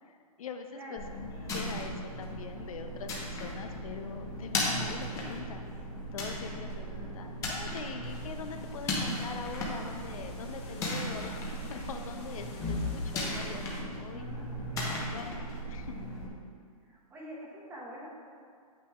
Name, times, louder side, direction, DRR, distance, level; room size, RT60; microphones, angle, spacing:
voice 1, 0.0-5.6 6.1-14.3 15.1-16.0, left 6 dB, 60° left, 6 dB, 0.5 m, -43 dB
voice 2, 0.7-1.1 6.9-7.3 14.1-15.1 16.8-18.1, right 1 dB, 10° right, -4 dB, 1.0 m, -47 dB
sound 1, 1.0-16.3, left 1 dB, 15° left, 0.9 m, -36 dB
sound 2, 8.1-13.8, left 2 dB, 45° left, 1.5 m, -52 dB
8.8 x 7.1 x 2.3 m, 2.2 s
hypercardioid pair, 150°, 20 cm